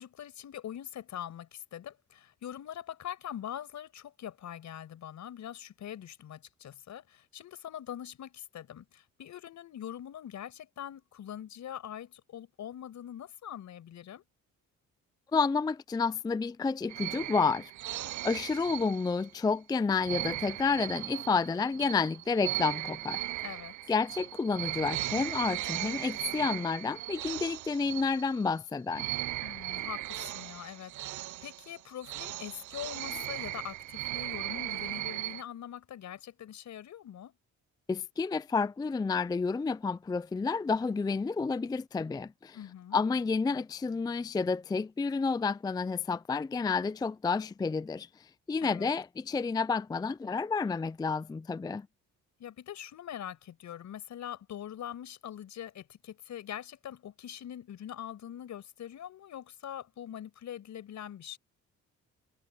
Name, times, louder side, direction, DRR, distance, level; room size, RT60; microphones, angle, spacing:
voice 1, 0.0-14.2 23.4-23.7 29.4-37.3 42.5-43.0 48.6-48.9 52.4-61.4, left 10 dB, 70° left, 5.6 m, -43 dB
voice 2, 15.3-23.2 23.9-29.1 37.9-42.6 42.9-48.1 48.5-51.9, left 4 dB, 15° left, 0.4 m, -30 dB
sound 1, 16.9-19.4 20.0-28.6 28.9-35.4, right 16 dB, 70° right, 0.7 m, -37 dB
cardioid pair, 90°, 30 cm